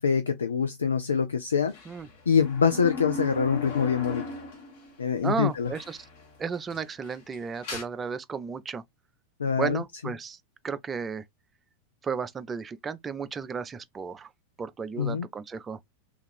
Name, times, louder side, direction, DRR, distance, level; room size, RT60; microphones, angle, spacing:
voice 1, 0.0-1.7 2.3-4.2 5.0-5.7 9.4-9.8 15.0-15.3, left 6 dB, 70° left, 0.3 m, -25 dB
sound 1, 1.7-4.9 5.3-5.4 5.8-6.3 6.5-7.8, left 3 dB, 50° left, 1.1 m, -37 dB
voice 2, 5.2-6.1 6.4-8.8 9.6-10.4 10.6-11.2 12.0-14.3 14.6-15.8, right 5 dB, 20° right, 0.3 m, -33 dB
3.2 x 2.4 x 3.2 m
figure-of-eight pair, 90°, 0 cm